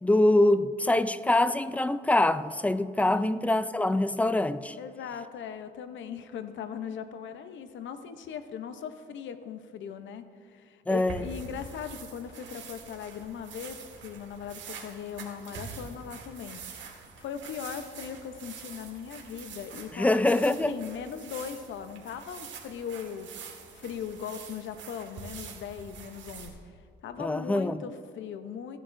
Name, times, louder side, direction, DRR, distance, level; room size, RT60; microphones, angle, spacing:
voice 1, 0.0-4.8 10.9-11.3 19.9-20.8 27.2-27.8, left 1 dB, 5° left, 0.4 m, -24 dB
voice 2, 4.8-16.8 17.2-23.4 23.7-26.7 27.0-28.8, left 7 dB, 70° left, 0.8 m, -39 dB
sound 1, 10.9-26.5, right 5 dB, 70° right, 1.9 m, -45 dB
16.5 x 10.0 x 2.6 m
cardioid pair, 90°, 20 cm